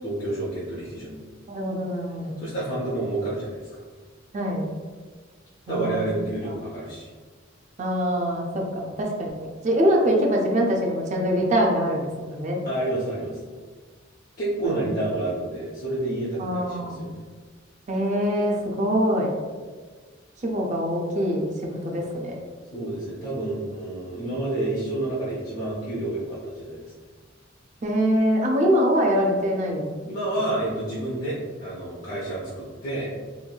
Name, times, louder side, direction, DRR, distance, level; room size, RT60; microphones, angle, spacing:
voice 1, 0.0-1.2 2.4-3.8 5.7-7.1 12.6-13.4 14.4-17.2 22.7-26.9 30.0-33.1, right 2 dB, 45° left, -8 dB, 0.6 m, -29 dB
voice 2, 1.5-2.3 4.3-4.6 5.7-6.0 7.8-12.6 14.6-14.8 16.4-17.0 17.9-19.3 20.4-21.4 21.8-22.4 27.8-29.8, equal, 35° right, 0 dB, 0.5 m, -24 dB
3.0 x 2.6 x 2.2 m, 1.5 s
head